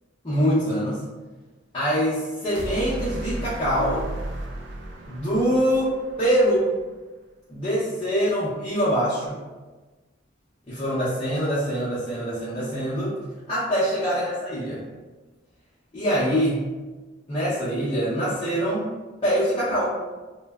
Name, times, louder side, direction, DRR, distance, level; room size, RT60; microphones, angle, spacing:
voice 1, 0.2-1.0 1.7-4.1 5.1-6.8 7.5-9.4 10.7-13.2 13.5-14.8 15.9-16.6 17.3-18.9 19.2-20.0, equal, 25° left, -11 dB, 0.6 m, -24 dB
sound 1, 2.5-6.8, right 1 dB, 65° right, 0.4 m, -35 dB
2.6 x 2.1 x 2.3 m, 1.2 s
head